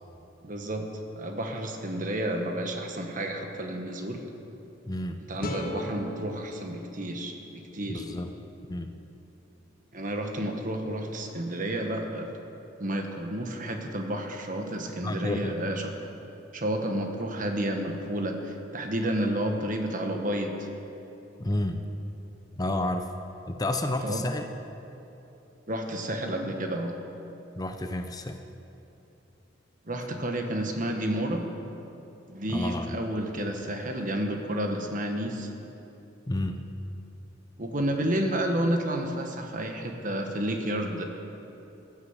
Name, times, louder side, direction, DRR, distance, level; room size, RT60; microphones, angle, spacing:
voice 1, 0.4-0.9 1.2-4.2 5.3-8.0 9.9-12.3 12.8-15.9 16.5-20.7 24.0-24.2 25.7-27.0 29.9-31.5 32.3-35.5 37.6-41.0, right 1 dB, 45° right, 4 dB, 1.5 m, -31 dB
voice 2, 4.9-5.2 7.9-8.3 8.7-8.9 15.0-15.6 21.4-21.8 22.6-23.1 23.5-24.5 27.6-28.4 32.5-32.9 36.3-36.6, left 1 dB, 20° left, 6 dB, 0.6 m, -30 dB
sound 1, 5.4-8.6, left 1 dB, 50° left, 1.5 m, -39 dB
15.0 x 10.0 x 8.1 m, 2.9 s
head